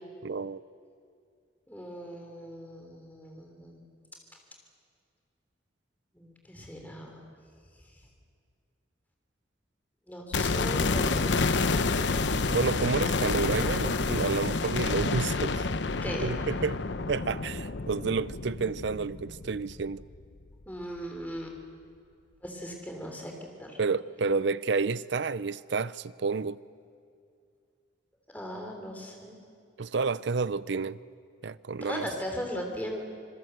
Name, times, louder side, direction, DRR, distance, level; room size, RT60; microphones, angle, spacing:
voice 1, 0.2-0.6 12.5-15.6 16.2-16.8 17.1-20.0 23.8-26.6 29.8-31.0 31.4-32.1, right 4 dB, 70° right, 0.6 m, -30 dB
voice 2, 1.7-3.8 6.1-7.3 10.1-12.5 16.0-16.4 20.7-21.5 22.4-23.8 28.3-29.4 31.8-33.0, equal, 10° left, 3.2 m, -38 dB
sound 1, 10.3-20.3 20.6-20.7, left 3 dB, 70° left, 0.8 m, -29 dB
26.0 x 22.0 x 7.9 m
head